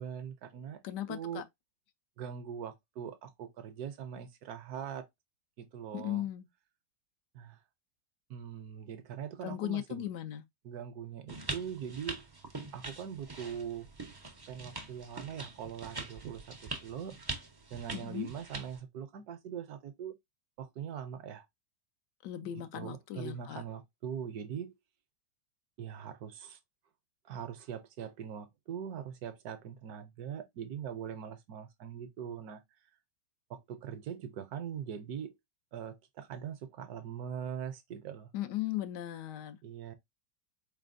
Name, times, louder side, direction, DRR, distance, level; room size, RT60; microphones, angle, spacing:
voice 1, 0.0-0.8 1.1-1.4 2.2-5.1 5.6-6.3 7.3-7.6 8.3-10.1 10.6-12.3 12.7-13.9 14.5-17.1 17.7-20.2 20.6-21.5 22.4-24.7 25.8-26.6 27.2-32.6 33.5-35.3 35.7-38.3 39.6-39.9, right 8 dB, 70° right, 1.1 m, -42 dB
voice 2, 0.8-1.4 5.9-6.5 9.4-10.4 17.9-18.3 22.2-23.6 38.3-39.6, left 13 dB, 80° left, 1.2 m, -37 dB
sound 1, 11.3-18.8, right 3 dB, 40° right, 0.3 m, -43 dB
4.3 x 3.3 x 2.5 m
omnidirectional pair, 1.9 m